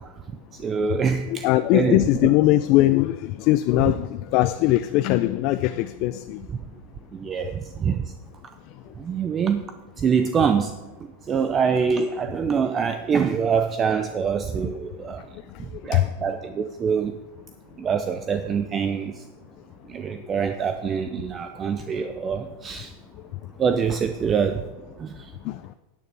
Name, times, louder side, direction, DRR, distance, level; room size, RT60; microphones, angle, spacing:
voice 1, 0.5-2.1 7.1-8.1 9.0-9.6 10.0-10.8 11.3-15.2 15.8-17.1 17.8-19.2 19.9-22.9 23.6-24.6 25.0-25.1, right 6 dB, 20° right, 9 dB, 0.4 m, -25 dB
voice 2, 1.3-6.5 15.7-16.1 25.4-25.6, left 16 dB, 45° left, 11 dB, 0.3 m, -21 dB
10.5 x 9.2 x 3.4 m, 1.2 s
supercardioid pair, 150°, 0 cm